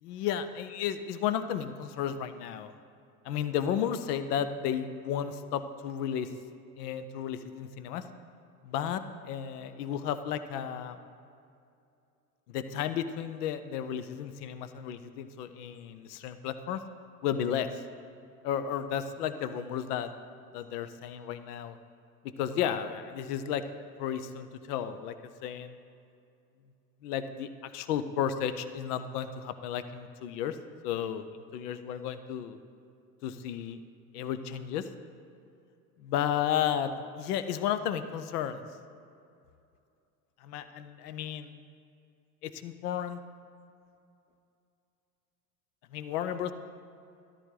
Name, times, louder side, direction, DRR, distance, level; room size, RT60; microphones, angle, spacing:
voice 1, 0.0-2.7 3.2-6.3 6.8-8.0 8.6-11.0 12.5-16.8 17.2-17.8 18.4-20.1 20.5-21.8 22.2-23.6 24.0-25.1 25.4-25.8 27.0-30.6 30.8-32.6 33.2-33.8 34.1-34.9 36.0-36.9 37.2-38.6 40.4-41.5 42.4-43.2 45.9-46.5, left 9 dB, 70° left, 11 dB, 0.8 m, -33 dB
13.5 x 11.5 x 3.9 m, 2.6 s
hypercardioid pair, 80°, 49 cm